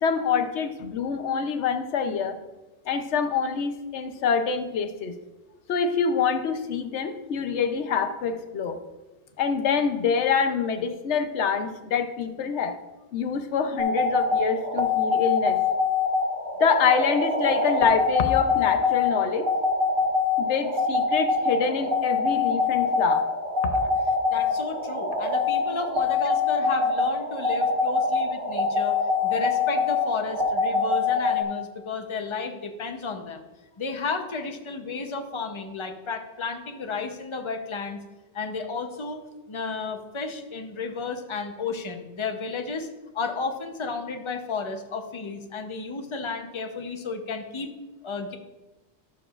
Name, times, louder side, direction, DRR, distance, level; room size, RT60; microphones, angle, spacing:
voice 1, 0.0-2.4 2.9-5.1 5.7-8.8 9.4-12.8 13.1-15.6 16.6-19.5 20.4-23.3 23.6-23.9, left 6 dB, 90° left, 8 dB, 1.0 m, -25 dB
sound 1, 13.8-31.4, left 4 dB, 50° right, 1.7 m, -24 dB
voice 2, 24.3-29.0 29.2-33.4 33.8-38.0 38.3-39.2 39.5-42.9 43.1-47.7 48.0-48.4, left 4 dB, 30° left, 5 dB, 0.7 m, -33 dB
13.5 x 6.8 x 2.4 m, 1.1 s
omnidirectional pair, 1.1 m